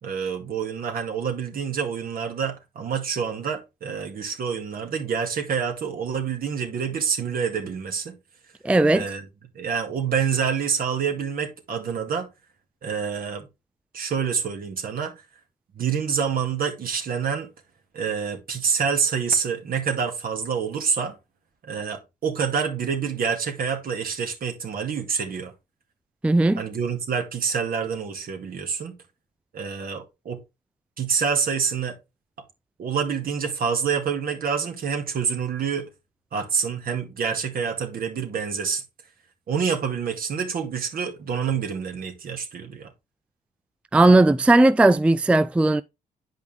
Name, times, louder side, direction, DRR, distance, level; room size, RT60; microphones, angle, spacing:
voice 1, 0.0-8.1 8.9-9.3 9.5-12.3 12.8-13.5 13.9-15.1 15.7-17.5 17.9-21.2 21.6-25.5 26.6-28.9 29.5-30.4 31.0-32.0 32.8-35.9 36.3-38.8 39.5-42.9, right 6 dB, 60° right, 2.2 m, -27 dB
voice 2, 8.6-9.0 26.2-26.6 43.9-45.8, right 2 dB, 5° right, 0.4 m, -17 dB
9.1 x 5.1 x 3.4 m
supercardioid pair, 55°, 17 cm